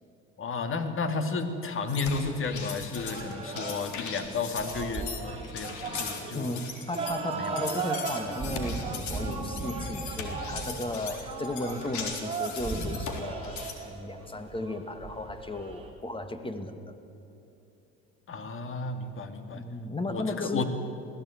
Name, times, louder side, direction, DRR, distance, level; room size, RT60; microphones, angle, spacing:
voice 1, 0.4-6.5 7.4-7.6 18.3-19.6 20.1-20.6, left 4 dB, 35° left, 8 dB, 2.4 m, -32 dB
sound 1, 1.9-13.7, left 6 dB, 55° left, 3.8 m, -39 dB
sound 2, 3.0-15.9, right 4 dB, 15° right, 5.2 m, -36 dB
voice 2, 6.3-16.9 19.5-20.6, left 2 dB, 15° left, 9 dB, 2.1 m, -35 dB
21.0 x 16.0 x 9.5 m, 2.9 s
hypercardioid pair, 80°, 34 cm